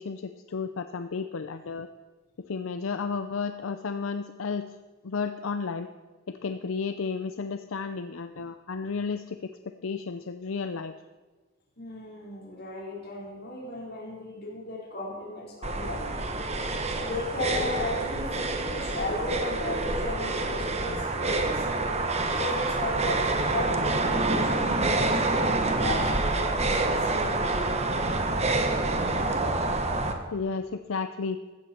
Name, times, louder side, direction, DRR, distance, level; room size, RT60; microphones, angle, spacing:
voice 1, 0.0-1.9 2.5-4.7 5.0-5.9 6.3-9.5 9.8-10.9 30.3-31.4, left 5 dB, 80° left, 9 dB, 0.6 m, -32 dB
voice 2, 11.8-16.1 17.0-21.7 22.3-27.7, left 1 dB, 50° left, -3 dB, 4.2 m, -35 dB
sound 1, 15.6-30.1, right 2 dB, 30° right, 1.2 m, -27 dB
15.5 x 13.5 x 4.4 m, 1.3 s
head